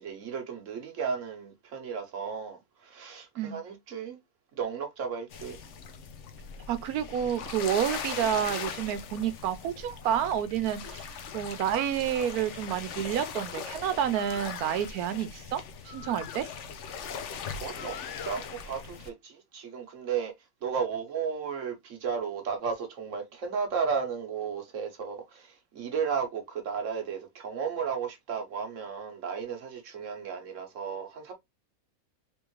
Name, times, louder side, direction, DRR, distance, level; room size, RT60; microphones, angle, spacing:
voice 1, 0.0-4.2 4.6-5.6 17.5-18.0 18.2-20.3 20.6-31.3, right 6 dB, 60° right, 1.2 m, -34 dB
sound 1, 5.3-19.1, left 6 dB, 60° left, 0.9 m, -40 dB
voice 2, 6.7-11.1 11.3-16.5, right 9 dB, 85° right, 1.2 m, -29 dB
3.5 x 3.5 x 3.0 m
omnidirectional pair, 1.5 m